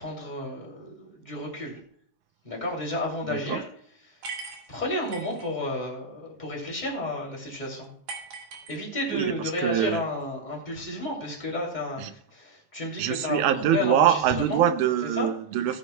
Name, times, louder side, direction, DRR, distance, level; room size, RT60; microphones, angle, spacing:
voice 1, 0.0-1.8 2.4-3.7 4.0-4.1 4.7-7.9 8.7-14.7 15.1-15.3, left 1 dB, 15° left, 2.5 m, -32 dB
voice 2, 3.3-3.6 9.1-9.3 9.6-10.0 12.0-12.1 13.0-15.8, right 10 dB, 80° right, 2.0 m, -24 dB
sound 1, 4.2-5.5 8.1-9.2, right 4 dB, 60° right, 2.8 m, -39 dB
15.5 x 9.8 x 2.2 m
omnidirectional pair, 3.7 m